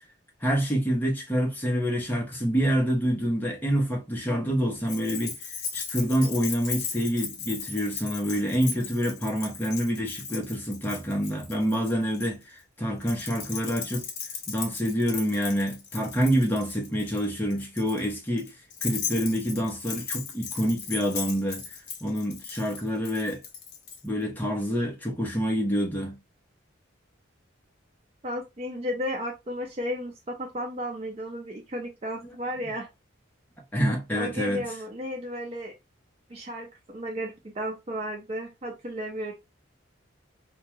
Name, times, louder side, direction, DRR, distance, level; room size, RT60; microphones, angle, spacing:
voice 1, 0.4-5.4 5.7-14.1 14.5-18.5 18.8-21.6 22.0-23.4 24.0-26.2 33.7-34.6, equal, 10° left, 0.7 m, -27 dB
Keys jangling, 4.9-12.3 13.0-24.0, left 6 dB, 55° left, 0.6 m, -37 dB
voice 2, 28.2-32.9 34.1-35.7 36.3-39.3, equal, 30° right, 0.4 m, -34 dB
2.3 x 2.2 x 2.9 m
head